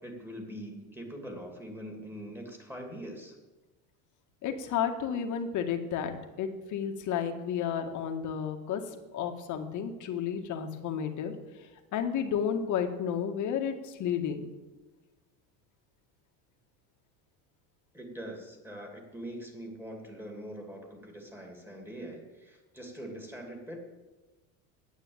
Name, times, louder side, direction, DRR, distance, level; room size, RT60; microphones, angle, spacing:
voice 1, 0.0-3.4 17.9-23.8, equal, 5° right, 2 dB, 2.7 m, -43 dB
voice 2, 4.4-6.1 6.4-8.8 9.1-11.3 11.9-14.5, left 8 dB, 45° left, 5 dB, 1.8 m, -32 dB
9.8 x 8.6 x 8.7 m, 1.2 s
supercardioid pair, 125°, 42 cm